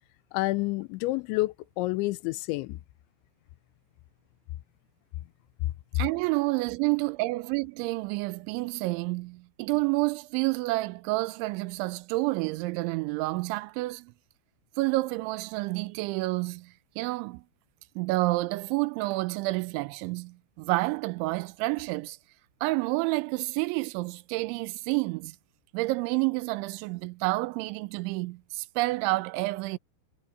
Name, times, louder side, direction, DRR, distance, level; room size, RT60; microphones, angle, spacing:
voice 1, 0.3-2.8, left 20 dB, 85° left, 3.0 m, -29 dB
voice 2, 6.0-14.1 14.8-17.4 18.0-22.2 22.6-25.4 25.7-29.8, right 22 dB, 90° right, 3.0 m, -29 dB
omnidirectional pair, 5.3 m